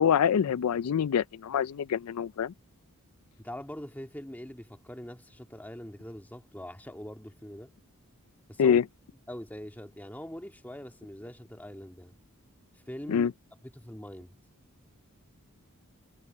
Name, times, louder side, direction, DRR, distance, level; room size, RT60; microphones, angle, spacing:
voice 1, 0.0-2.5 8.6-8.8 13.1-13.3, left 8 dB, 85° left, 0.4 m, -25 dB
voice 2, 3.4-7.7 8.5-8.8 9.3-12.1 12.9-13.3 13.6-14.3, equal, 10° left, 2.0 m, -43 dB
head